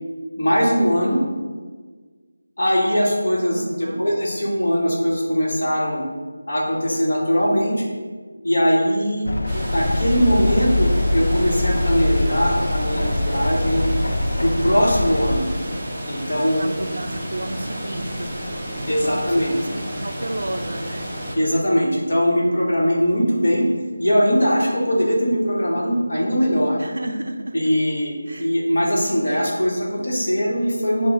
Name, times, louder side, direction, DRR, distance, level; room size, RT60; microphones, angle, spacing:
voice 1, 0.4-1.2 2.6-6.0 6.5-7.8 8.4-9.2 9.5-13.9 14.4-15.5 16.1-16.6 18.9-19.5 21.3-23.7 24.0-26.8 27.5-28.1 28.4-31.1, equal, 50° left, -4 dB, 1.1 m, -20 dB
voice 2, 3.5-4.0 16.6-18.5 19.0-19.4 19.7-21.0 26.8-27.5 28.3-28.5, right 1 dB, 65° right, 5 dB, 0.4 m, -31 dB
sound 1, 9.2-15.4, left 1 dB, 80° left, 0.4 m, -23 dB
sound 2, 9.5-21.4, equal, 10° right, 0.5 m, -31 dB
5.7 x 2.1 x 3.5 m, 1.5 s
figure-of-eight pair, 175°, 0 cm